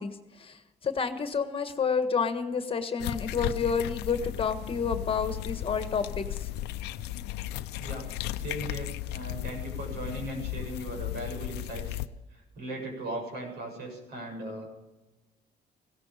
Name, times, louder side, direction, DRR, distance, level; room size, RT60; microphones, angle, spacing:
voice 1, 0.0-6.5, left 5 dB, 30° left, 8 dB, 1.5 m, -30 dB
sound 1, 3.0-12.1, left 14 dB, 90° left, 0.7 m, -35 dB
voice 2, 8.4-12.0 12.3-14.7, right 1 dB, 75° right, 2 dB, 7.4 m, -38 dB
17.0 x 14.0 x 5.2 m, 1.0 s
cardioid pair, 110°, 17 cm